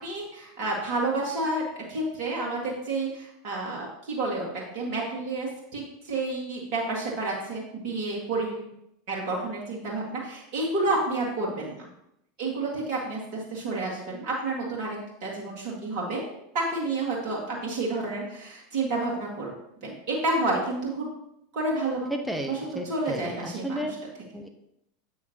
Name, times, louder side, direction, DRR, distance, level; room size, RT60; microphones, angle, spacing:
voice 1, 0.0-4.5 4.7-5.8 6.1-8.6 9.1-11.9 12.4-16.2 16.5-19.5 19.8-21.1 21.5-22.1 22.9-23.8, right 2 dB, 55° right, -3 dB, 1.8 m, -30 dB
voice 2, 22.1-23.9 24.3-24.5, equal, 5° right, 4 dB, 0.9 m, -33 dB
7.7 x 5.6 x 3.0 m, 0.78 s
figure-of-eight pair, 85°, 0 cm